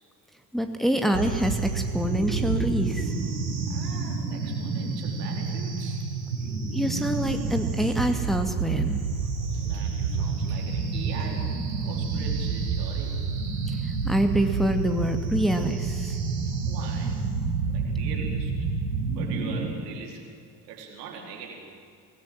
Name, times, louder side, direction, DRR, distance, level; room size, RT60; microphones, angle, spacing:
voice 1, 0.5-3.1 6.7-9.0 13.7-13.8 14.0-16.1, equal, ahead, 4 dB, 2.4 m, -26 dB
sound 1, 1.1-19.7, right 4 dB, 85° right, 4.3 m, -29 dB
voice 2, 3.7-6.1 9.4-13.3 16.5-17.4 17.7-18.7 19.1-20.3 20.6-21.7, right 5 dB, 70° right, 0 dB, 4.5 m, -42 dB
24.5 x 19.0 x 7.8 m, 2.4 s
figure-of-eight pair, 60°, 49 cm